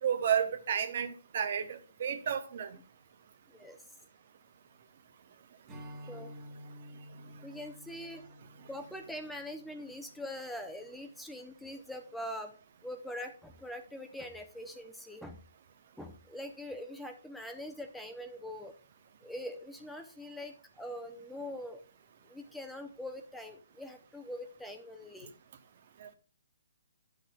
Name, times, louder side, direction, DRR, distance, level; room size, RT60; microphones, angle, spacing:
voice 1, 0.0-2.8 26.0-26.1, right 8 dB, 50° right, 0.8 m, -32 dB
Strum, 5.7-11.1, equal, 15° right, 1.4 m, -51 dB
voice 2, 7.4-8.2 8.7-12.5 12.8-15.4 16.0-18.7 19.2-21.8 22.2-25.3, left 1 dB, 5° left, 0.6 m, -43 dB
10.5 x 6.2 x 2.2 m
hypercardioid pair, 150°, 0 cm